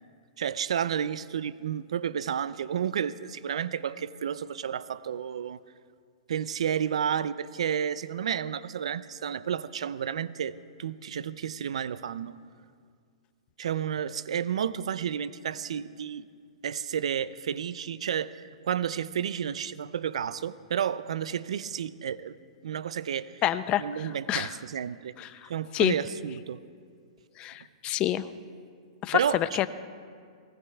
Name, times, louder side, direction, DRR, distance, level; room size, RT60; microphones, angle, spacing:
voice 1, 0.4-5.6 6.3-12.4 13.6-16.3 16.6-22.4 22.6-23.4 23.8-25.2 25.5-26.6 29.1-29.4, right 8 dB, 80° right, 17 dB, 0.4 m, -31 dB
voice 2, 23.4-24.5 25.2-25.9 27.4-28.3 29.0-29.7, left 13 dB, 30° left, 13 dB, 0.5 m, -28 dB
24.0 x 20.0 x 2.3 m, 2.1 s
hypercardioid pair, 135°, 3 cm